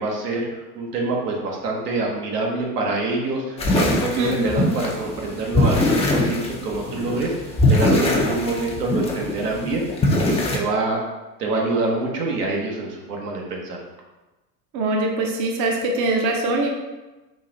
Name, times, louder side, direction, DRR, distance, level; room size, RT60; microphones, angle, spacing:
voice 1, 0.0-7.3 7.7-10.0 10.3-11.0 11.4-13.8, right 2 dB, 80° right, -1 dB, 1.1 m, -26 dB
sound 1, 3.6-10.6, left 1 dB, 15° left, 0.5 m, -22 dB
voice 2, 14.7-16.7, right 2 dB, 40° right, 1 dB, 0.7 m, -22 dB
4.0 x 2.5 x 3.8 m, 1.1 s
hypercardioid pair, 90°, 47 cm